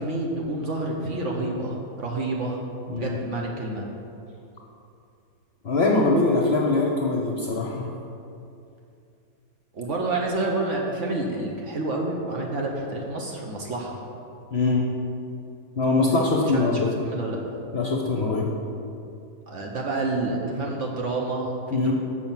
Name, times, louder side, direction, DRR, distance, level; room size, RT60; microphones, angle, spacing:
voice 1, 0.0-2.6 3.0-3.9 9.7-14.0 16.5-17.4 19.5-21.9, right 2 dB, 55° right, -1 dB, 1.1 m, -29 dB
voice 2, 2.9-3.2 5.6-7.9 14.5-14.9 15.8-16.9 17.7-18.5 21.7-21.9, left 3 dB, 50° left, -1 dB, 0.8 m, -22 dB
6.4 x 6.2 x 7.2 m, 2.7 s
omnidirectional pair, 1.8 m